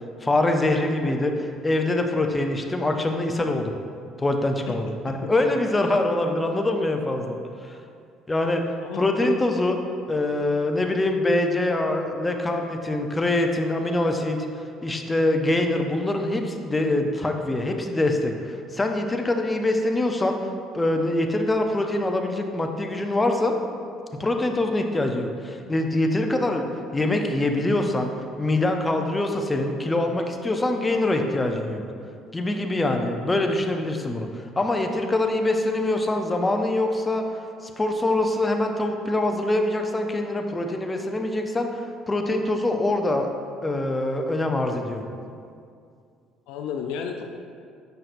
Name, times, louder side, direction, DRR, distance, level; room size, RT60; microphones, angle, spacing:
voice 1, 0.2-3.7 4.2-7.8 8.3-8.6 8.9-9.8 10.1-14.4 14.8-20.4 20.7-23.5 24.2-28.1 28.4-31.8 32.3-43.3 43.6-45.0, left 2 dB, 20° left, 4 dB, 0.6 m, -24 dB
voice 2, 8.8-9.3 46.5-47.2, left 7 dB, 75° left, 4 dB, 0.4 m, -32 dB
6.7 x 5.6 x 2.6 m, 2.3 s
hypercardioid pair, 60°, 0 cm